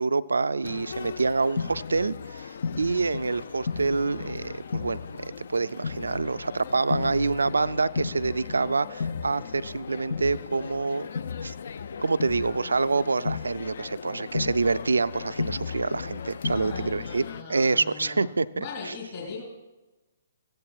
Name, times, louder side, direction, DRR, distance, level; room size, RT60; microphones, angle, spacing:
voice 1, 0.0-11.1 11.4-11.5 12.0-17.2 17.5-18.9, right 4 dB, 75° right, 15 dB, 0.3 m, -27 dB
sound 1, 0.6-17.4, left 5 dB, 60° left, 0.3 m, -35 dB
voice 2, 16.4-18.3 18.5-19.4, left 5 dB, 35° left, -2 dB, 2.7 m, -39 dB
15.5 x 8.7 x 2.3 m, 1.1 s
figure-of-eight pair, 130°, 0 cm